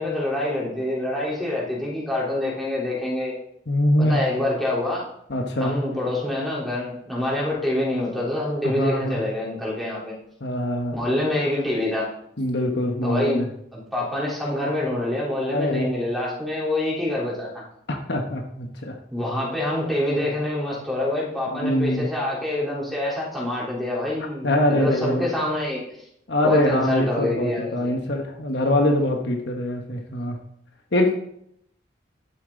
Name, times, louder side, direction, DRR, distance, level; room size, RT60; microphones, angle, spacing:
voice 1, 0.0-3.4 4.0-5.0 5.6-10.1 10.9-12.1 13.0-13.4 13.7-17.6 19.1-26.0 26.4-27.9, left 1 dB, ahead, -7 dB, 3.5 m, -26 dB
voice 2, 3.7-4.2 5.3-5.8 8.6-9.2 10.4-11.0 12.4-13.5 15.5-15.9 17.9-19.0 21.5-22.1 24.4-25.3 26.3-30.4 30.9-31.1, left 1 dB, 60° left, 2 dB, 1.2 m, -23 dB
11.5 x 8.5 x 3.8 m, 0.74 s
head